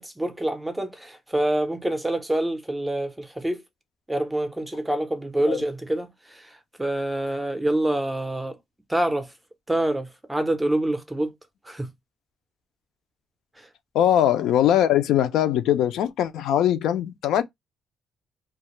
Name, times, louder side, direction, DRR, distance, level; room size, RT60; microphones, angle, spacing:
voice 1, 0.0-3.6 4.1-8.6 8.9-9.3 9.7-11.3 11.6-11.9 13.6-13.7, right 1 dB, 5° right, 0.5 m, -26 dB
voice 2, 13.9-17.4, left 11 dB, 80° left, 0.4 m, -21 dB
2.4 x 2.3 x 2.9 m
cardioid pair, 160°, 0 cm